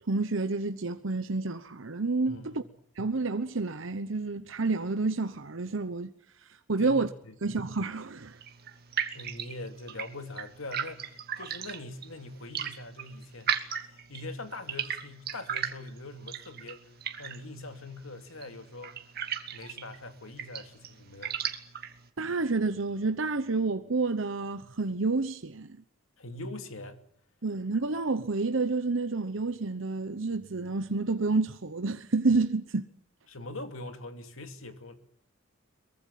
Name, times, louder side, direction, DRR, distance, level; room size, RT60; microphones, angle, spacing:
voice 1, 0.1-2.5 3.0-6.1 6.7-7.1 7.4-8.4 22.2-25.7 27.4-32.9, right 3 dB, 65° right, 1.0 m, -29 dB
voice 2, 2.3-2.7 6.8-7.3 9.1-16.9 17.2-19.0 19.5-21.5 26.2-27.0 33.3-35.0, left 2 dB, 80° left, 2.7 m, -43 dB
sound 1, 8.2-22.1, right 8 dB, 50° right, 2.0 m, -38 dB
23.5 x 23.0 x 7.5 m
head